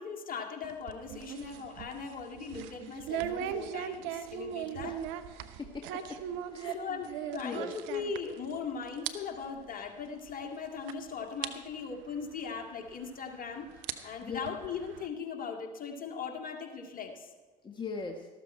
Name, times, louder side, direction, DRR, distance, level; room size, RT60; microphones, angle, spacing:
voice 1, 0.0-5.0 6.7-13.7 14.0-17.3, left 6 dB, 40° left, 4 dB, 2.0 m, -39 dB
sound 1, 0.6-8.6 8.8-9.1 9.4-9.6 10.3-10.4 10.9-11.0 11.4-11.5 12.9-13.0 13.7-15.1, right 10 dB, 65° right, 0.9 m, -39 dB
voice 2, 5.6-6.2 6.5-6.8 7.4-7.7 14.2-14.4 17.6-18.3, left 4 dB, 20° left, 3 dB, 1.4 m, -39 dB
13.5 x 13.0 x 4.4 m, 1.3 s
hypercardioid pair, 60°, 21 cm